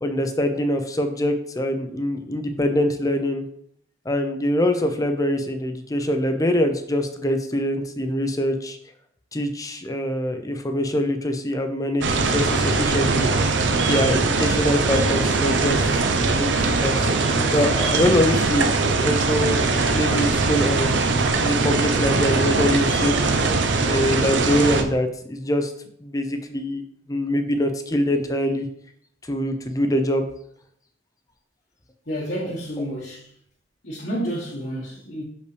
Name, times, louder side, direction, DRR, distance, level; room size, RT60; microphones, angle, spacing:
voice 1, 0.0-3.4 4.1-8.8 9.3-13.3 13.8-16.5 16.8-19.7 19.9-21.0 21.4-23.2 23.8-25.7 26.0-26.8 27.1-28.7 29.3-30.2, left 1 dB, 20° left, 0.7 m, -24 dB
sound 1, 12.0-24.8, right 3 dB, 70° right, 0.7 m, -21 dB
voice 2, 32.1-33.3 33.8-35.2, equal, 55° left, 1.4 m, -30 dB
6.5 x 5.4 x 3.3 m
head